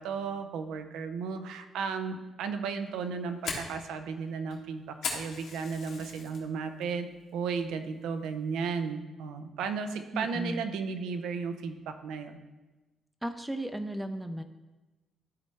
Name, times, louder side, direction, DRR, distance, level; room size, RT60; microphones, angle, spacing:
voice 1, 0.0-12.4, right 5 dB, 85° right, 8 dB, 0.6 m, -34 dB
Fire, 2.9-6.4 6.8-7.2 7.6-7.7 8.2-8.6, left 5 dB, 80° left, 1.5 m, -38 dB
voice 2, 10.1-10.6 13.2-14.4, right 1 dB, 10° right, 7 dB, 0.4 m, -35 dB
12.0 x 4.2 x 3.2 m, 1.1 s
cardioid pair, 90°, 0 cm